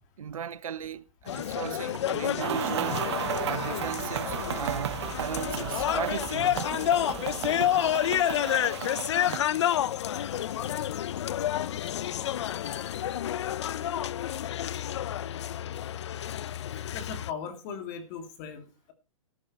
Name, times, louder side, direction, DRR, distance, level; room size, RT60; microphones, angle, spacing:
voice 1, 0.2-3.0 3.4-6.6, right 8 dB, 85° right, 1.0 m, -36 dB
sound 1, 1.3-17.3, left 11 dB, 55° left, 0.6 m, -30 dB
sound 2, 1.3-11.2 11.6-11.8, right 8 dB, 10° right, 1.0 m, -45 dB
sound 3, 2.4-9.4, right 12 dB, 55° right, 0.6 m, -34 dB
voice 2, 16.9-18.9, left 6 dB, 30° left, 2.7 m, -39 dB
13.5 x 11.0 x 4.3 m
hypercardioid pair, 160°, 17 cm